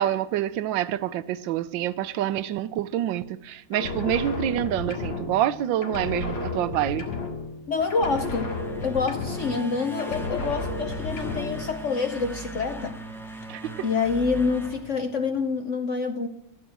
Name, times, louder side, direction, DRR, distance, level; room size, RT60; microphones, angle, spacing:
voice 1, 0.0-7.0 13.5-13.8, right 12 dB, 80° right, 1.4 m, -27 dB
sound 1, 3.7-5.6 5.8-7.6 7.9-9.7 10.0-11.7, left 3 dB, 75° left, 2.9 m, -32 dB
voice 2, 7.7-13.0 13.8-16.3, left 4 dB, 60° left, 0.8 m, -27 dB
sound 2, 7.7-15.6, right 2 dB, ahead, 0.8 m, -39 dB
14.0 x 9.1 x 7.6 m
omnidirectional pair, 2.1 m